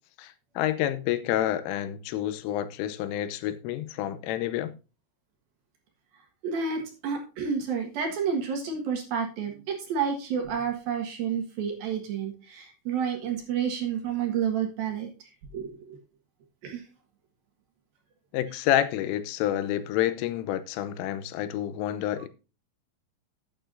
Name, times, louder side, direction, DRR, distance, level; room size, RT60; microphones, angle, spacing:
voice 1, 0.2-4.7 18.3-22.3, left 12 dB, 90° left, 3.3 m, -28 dB
voice 2, 6.4-15.1 15.5-16.0 16.6-16.8, right 7 dB, 60° right, 2.9 m, -30 dB
13.0 x 9.0 x 2.7 m
omnidirectional pair, 5.7 m